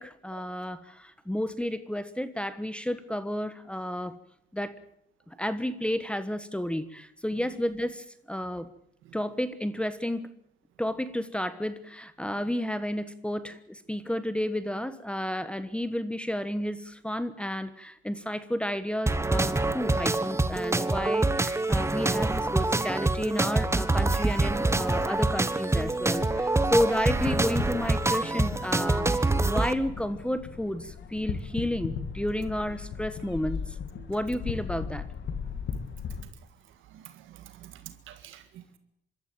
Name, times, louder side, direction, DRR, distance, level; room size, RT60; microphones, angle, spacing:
voice 1, 0.0-4.2 4.5-4.7 5.3-8.7 9.1-10.3 10.8-33.8 34.1-35.1, equal, 5° left, 1.3 m, -31 dB
sound 1, 19.1-29.7, right 2 dB, 15° right, 1.3 m, -26 dB
sound 2, 25.8-36.2, left 6 dB, 65° left, 2.2 m, -37 dB
voice 2, 36.9-38.8, right 11 dB, 90° right, 1.8 m, -48 dB
25.5 x 13.5 x 9.0 m
cardioid pair, 90°, 20 cm